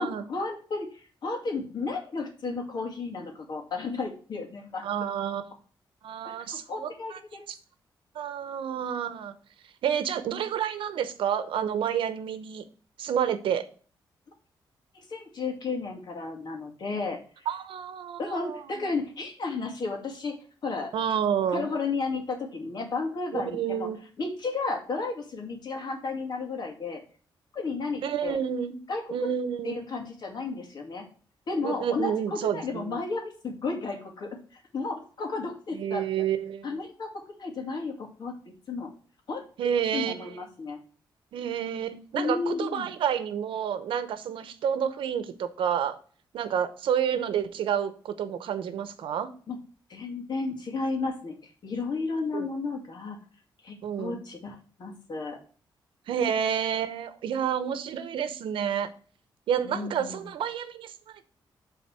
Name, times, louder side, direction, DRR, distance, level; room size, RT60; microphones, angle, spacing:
voice 1, 0.0-4.8 6.2-6.4 6.7-7.5 14.9-17.5 18.2-20.4 20.6-20.9 21.5-23.9 24.2-27.0 27.5-28.4 28.9-29.3 29.6-31.0 31.5-34.4 34.7-36.1 36.6-38.3 38.7-38.9 39.3-39.4 39.7-40.8 42.2-42.9 49.5-49.6 49.9-53.2 53.6-55.4 59.6-60.3, left 3 dB, 55° left, 2 dB, 2.3 m, -33 dB
voice 2, 4.8-5.5 6.0-7.2 7.5-7.6 8.1-9.3 9.8-12.6 13.0-13.6 17.5-18.9 20.9-21.7 23.3-24.0 28.0-28.8 29.1-29.8 31.6-33.0 35.7-36.8 39.6-40.4 41.3-46.0 46.3-49.3 52.3-52.5 53.8-54.2 56.1-58.9 59.5-61.3, right 8 dB, 90° right, 11 dB, 0.8 m, -29 dB
7.2 x 4.0 x 6.1 m, 0.41 s
cardioid pair, 115°, 9 cm